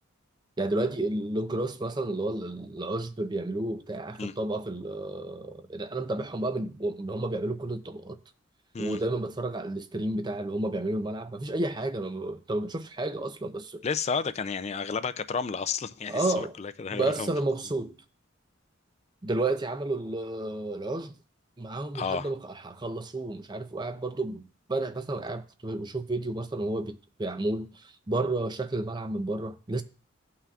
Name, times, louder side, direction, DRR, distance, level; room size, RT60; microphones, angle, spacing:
voice 1, 0.6-8.2 8.8-13.8 16.1-16.6 16.9-18.0 19.2-21.1 21.6-24.4 24.7-29.8, right 2 dB, 20° right, 0.5 m, -31 dB
voice 2, 13.8-17.3 21.9-22.3, left 5 dB, 35° left, 0.4 m, -31 dB
16.0 x 5.7 x 2.4 m
head